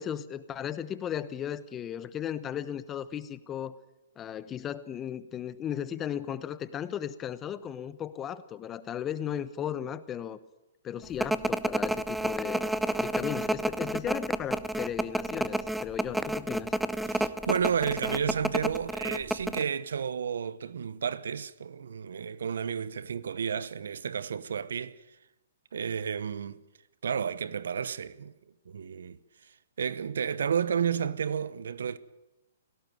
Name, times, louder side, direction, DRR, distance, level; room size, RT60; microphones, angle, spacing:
voice 1, 0.0-3.8 4.2-10.4 10.8-12.6 13.0-16.7, left 9 dB, 20° left, 1.0 m, -36 dB
sound 1, 11.2-19.6, right 1 dB, ahead, 0.7 m, -30 dB
voice 2, 17.1-25.0 25.7-26.6 27.0-28.3 28.7-29.2 29.8-32.0, right 7 dB, 75° right, 0.9 m, -31 dB
17.5 x 17.5 x 9.2 m
hypercardioid pair, 135°, 0 cm